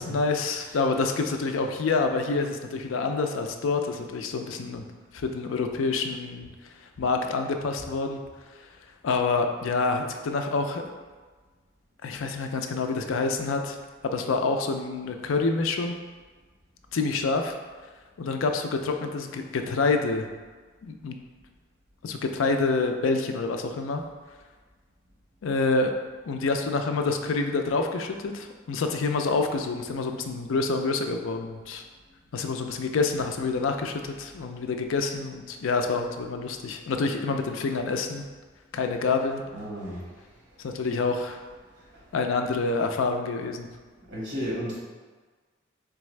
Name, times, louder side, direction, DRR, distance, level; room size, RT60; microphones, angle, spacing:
voice 1, 0.0-4.9 5.1-6.5 7.0-8.2 9.0-10.8 12.0-13.8 14.0-16.0 16.9-17.6 18.2-20.3 20.8-21.2 22.0-24.0 25.4-25.9 26.3-31.8 32.3-38.2 38.7-39.4 40.6-41.4 42.1-43.7, left 3 dB, 85° left, 5 dB, 0.4 m, -27 dB
voice 2, 39.5-40.1 41.9-42.0 44.1-44.8, equal, 65° right, -6 dB, 1.4 m, -33 dB
4.0 x 3.5 x 3.2 m, 1.4 s
head